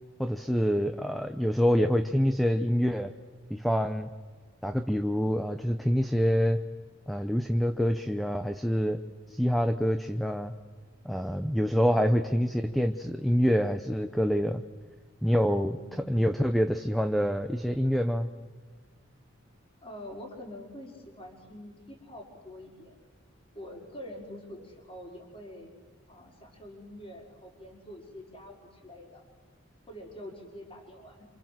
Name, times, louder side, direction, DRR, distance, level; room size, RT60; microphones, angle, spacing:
voice 1, 0.2-3.1 3.5-4.1 4.6-6.6 7.1-9.0 9.3-10.5 11.0-14.6 15.2-18.3, equal, ahead, 8 dB, 0.8 m, -26 dB
voice 2, 15.7-16.2 19.8-23.0 23.5-25.7 26.1-29.2 29.9-31.3, left 1 dB, 30° left, 0 dB, 5.1 m, -46 dB
29.0 x 27.0 x 7.7 m, 1.5 s
head